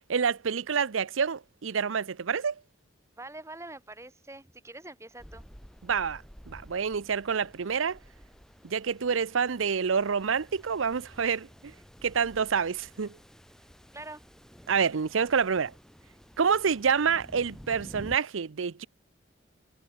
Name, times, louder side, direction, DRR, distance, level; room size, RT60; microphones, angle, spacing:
voice 1, 0.1-2.5 5.8-8.0 8.6-11.7 12.0-13.2 14.7-15.7 16.4-18.9, right 6 dB, 85° right, 0.6 m, -27 dB
voice 2, 3.2-5.4 6.5-6.7 13.9-14.2, right 2 dB, 15° right, 2.2 m, -44 dB
sound 1, 5.2-18.2, equal, 5° left, 3.2 m, -51 dB
head